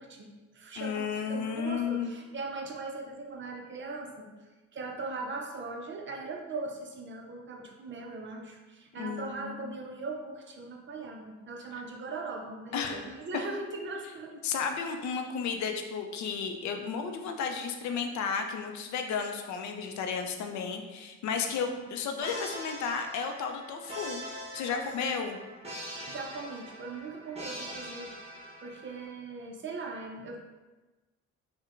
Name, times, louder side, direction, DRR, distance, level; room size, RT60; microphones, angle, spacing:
voice 1, 0.0-4.3 4.7-14.3 21.6-21.9 24.7-25.1 26.1-30.4, right 3 dB, 40° right, 2 dB, 0.5 m, -40 dB
voice 2, 0.8-2.1 9.0-9.8 12.7-13.0 14.4-24.2 24.5-25.4, left 6 dB, 70° left, 5 dB, 0.5 m, -33 dB
sound 1, 22.2-29.1, equal, 20° right, 0.8 m, -43 dB
4.4 x 2.2 x 2.4 m, 1.2 s
cardioid pair, 90°, 30 cm